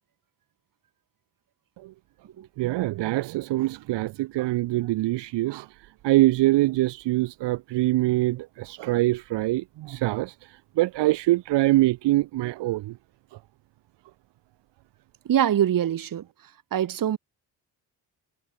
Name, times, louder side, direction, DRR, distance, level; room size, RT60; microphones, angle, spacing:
voice 1, 2.6-5.8 6.0-12.9, right 17 dB, 80° right, 1.0 m, -24 dB
voice 2, 15.2-16.3 16.7-17.2, right 10 dB, 50° right, 6.0 m, -23 dB
cardioid pair, 165°, 42 cm